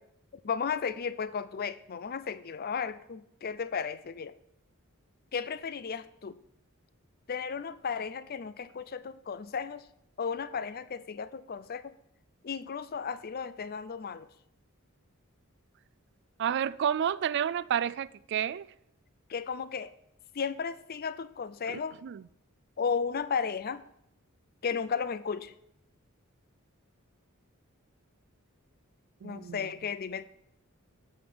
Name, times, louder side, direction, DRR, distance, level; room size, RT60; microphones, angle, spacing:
voice 1, 0.4-4.3 5.3-6.3 7.3-9.8 10.2-11.9 12.4-14.3 19.3-19.9 20.3-22.0 22.8-23.8 24.6-25.5 29.2-30.3, left 6 dB, 45° left, 0.5 m, -34 dB
voice 2, 16.4-18.6 21.7-22.2 29.2-29.6, right 9 dB, 55° right, 0.3 m, -30 dB
8.7 x 5.3 x 7.8 m
head